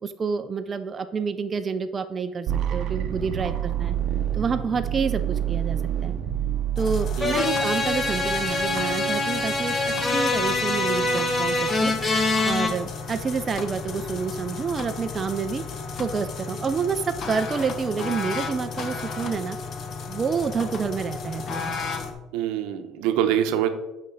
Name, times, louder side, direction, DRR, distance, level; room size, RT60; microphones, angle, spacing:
voice 1, 0.0-4.0 4.3-6.2 6.8-11.9 12.5-15.6 15.9-19.6 20.1-21.8, right 5 dB, 30° right, 9 dB, 0.4 m, -28 dB
sound 1, 2.5-8.5, right 10 dB, 55° right, 0.8 m, -28 dB
sound 2, 6.8-22.1, left 5 dB, 45° left, 0.9 m, -34 dB
sound 3, 7.2-12.7, left 2 dB, 20° left, 1.1 m, -24 dB
voice 2, 7.2-7.6 22.3-23.7, right 10 dB, 85° right, 8 dB, 0.8 m, -25 dB
8.6 x 5.3 x 3.8 m, 1.0 s
cardioid pair, 140°, 0 cm